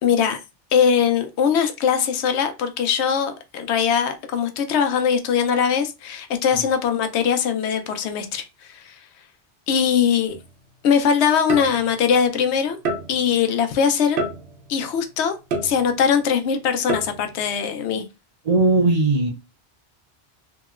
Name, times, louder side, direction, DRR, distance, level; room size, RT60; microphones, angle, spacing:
voice 1, 0.0-0.4 0.7-9.0 9.7-10.3 10.8-12.8 13.1-14.3 14.7-15.3 15.6-18.0, left 7 dB, 90° left, 0.9 m, -21 dB
sound 1, 10.3-10.5 11.5-12.1 12.8-13.4 14.2-14.8 15.5-16.2 16.9-17.4, right 2 dB, 75° right, 0.9 m, -28 dB
voice 2, 18.4-19.3, right 3 dB, 50° right, 0.5 m, -18 dB
2.9 x 2.8 x 2.3 m
omnidirectional pair, 1.1 m